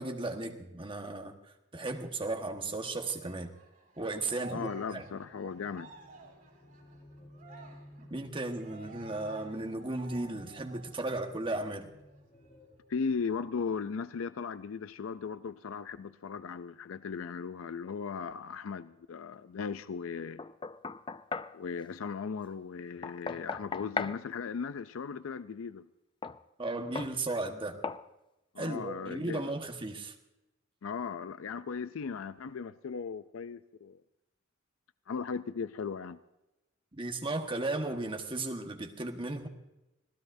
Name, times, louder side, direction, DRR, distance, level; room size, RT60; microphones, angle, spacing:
voice 1, 0.0-1.3 1.7-3.5 4.0-5.0 8.1-11.9 26.6-27.8 28.6-30.1 36.9-39.5, right 2 dB, 25° right, 1.4 m, -35 dB
Cheering, 3.1-11.1 11.5-11.6 12.0-13.0, right 3 dB, 45° right, 3.4 m, -52 dB
voice 2, 4.5-5.9 12.9-20.4 21.5-25.9 28.5-29.5 30.8-34.0 35.1-36.2, left 5 dB, 85° left, 0.4 m, -37 dB
sound 1, 4.9-13.6, left 1 dB, 40° left, 3.9 m, -55 dB
Knock, 20.4-21.6 23.0-24.2 26.2-26.4 27.0-27.2 27.8-28.1, left 4 dB, 25° left, 0.4 m, -37 dB
25.5 x 16.5 x 2.7 m
head